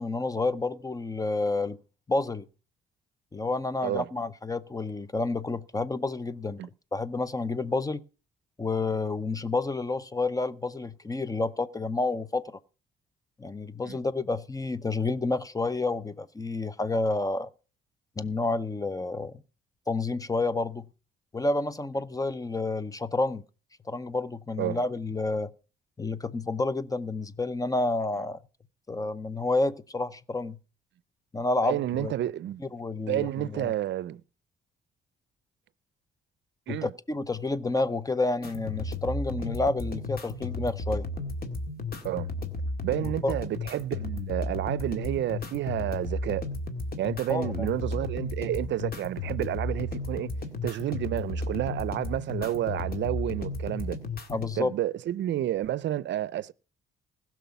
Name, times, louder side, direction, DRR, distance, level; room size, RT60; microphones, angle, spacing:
voice 1, 0.0-1.8 2.1-2.4 3.3-6.6 6.9-8.0 8.6-12.5 13.4-17.5 18.2-19.3 19.9-20.9 21.3-23.4 23.9-25.5 26.0-28.4 28.9-30.6 31.3-32.1 32.7-33.7 36.7-41.0 43.0-43.3 47.3-47.7 54.3-54.7, left 3 dB, 15° left, 0.7 m, -29 dB
voice 2, 31.6-32.6 33.0-34.2 36.7-36.9 42.0-42.3 42.8-46.4 47.0-50.3 50.6-54.0 54.6-56.5, right 12 dB, 65° right, 0.5 m, -30 dB
sound 1, 38.4-54.4, left 2 dB, 50° left, 1.9 m, -34 dB
16.0 x 6.1 x 6.9 m
cardioid pair, 90°, 20 cm